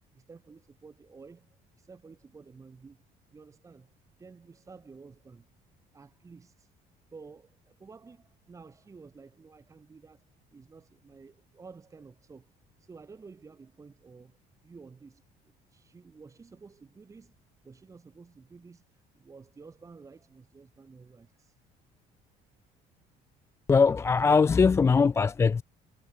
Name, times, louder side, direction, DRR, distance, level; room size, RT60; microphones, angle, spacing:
voice 1, 0.1-3.0 3.3-3.9 4.2-5.5 5.9-6.7 7.1-10.3 10.5-12.5 12.8-17.4 17.6-21.6, right 4 dB, 20° right, 2.0 m, -52 dB
voice 2, 23.7-25.6, left 5 dB, 15° left, 0.3 m, -21 dB
cardioid pair, 160°, 17 cm